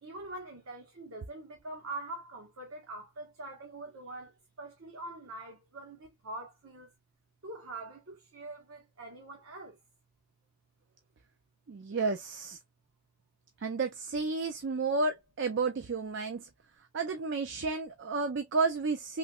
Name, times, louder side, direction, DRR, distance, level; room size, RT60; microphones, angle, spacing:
voice 1, 0.0-4.3 4.6-6.9 7.4-9.8, right 2 dB, 75° right, 1.0 m, -44 dB
voice 2, 11.7-12.6 13.6-16.5 16.9-19.2, right 4 dB, 55° right, 0.4 m, -31 dB
3.2 x 2.8 x 2.3 m
head